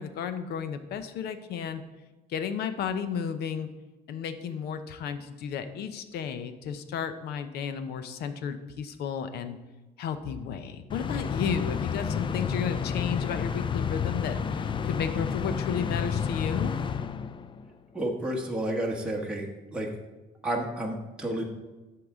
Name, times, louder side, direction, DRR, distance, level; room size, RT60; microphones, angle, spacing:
voice 1, 0.0-1.8 2.3-3.7 4.1-9.6 10.0-16.7, left 7 dB, 75° left, 10 dB, 0.7 m, -33 dB
sound 1, 10.9-17.7, left 6 dB, 30° left, 0.4 m, -30 dB
voice 2, 17.9-19.9 20.4-21.5, right 1 dB, 5° right, -2 dB, 1.2 m, -31 dB
13.0 x 4.8 x 3.6 m, 1.1 s
cardioid pair, 110°, 17 cm